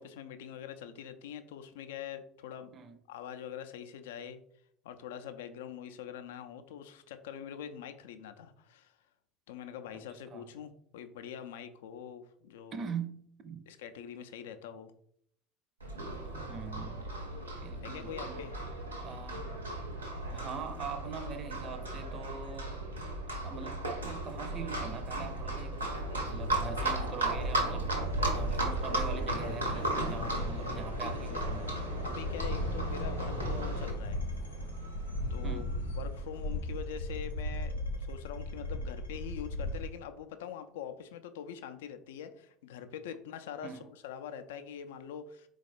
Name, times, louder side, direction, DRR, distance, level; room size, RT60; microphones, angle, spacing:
voice 1, 0.0-2.7 3.1-4.4 4.8-9.0 9.5-12.8 13.7-14.9 17.8-18.5 31.0-31.5 32.0-34.2 35.3-35.6 36.0-45.5, left 8 dB, 70° left, 0.4 m, -44 dB
voice 2, 12.7-13.2 13.4-13.6 16.5-17.1 17.6-18.4 19.0-19.5 20.3-22.8 23.3-26.0 26.3-27.9 28.3-31.7 35.4-35.7 43.6-43.9, right 6 dB, 40° right, 0.5 m, -43 dB
Livestock farm animals working animals, 15.8-33.9, right 1 dB, 85° right, 0.9 m, -35 dB
sound 1, 26.6-33.6, left 5 dB, 35° left, 0.7 m, -50 dB
sound 2, 27.9-39.9, left 1 dB, 90° left, 0.7 m, -38 dB
4.2 x 2.3 x 4.2 m
figure-of-eight pair, 70°, 0 cm